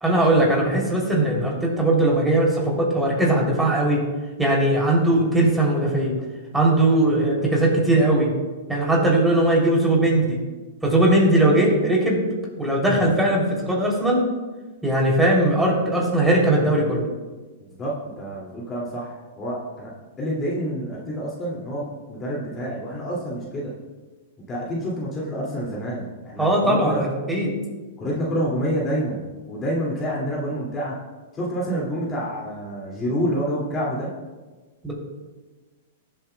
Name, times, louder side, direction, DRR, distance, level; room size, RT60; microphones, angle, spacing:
voice 1, 0.0-4.0 4.4-6.1 6.5-8.3 8.7-10.4 10.8-12.2 12.6-14.2 14.8-17.0 26.4-27.5 34.8-34.9, right 1 dB, 5° right, -3 dB, 3.0 m, -19 dB
voice 2, 17.7-19.9 20.2-23.7 24.5-27.0 28.0-30.9 31.3-34.1, equal, 25° left, -5 dB, 2.3 m, -28 dB
19.5 x 7.7 x 2.3 m, 1.3 s
hypercardioid pair, 125°, 0 cm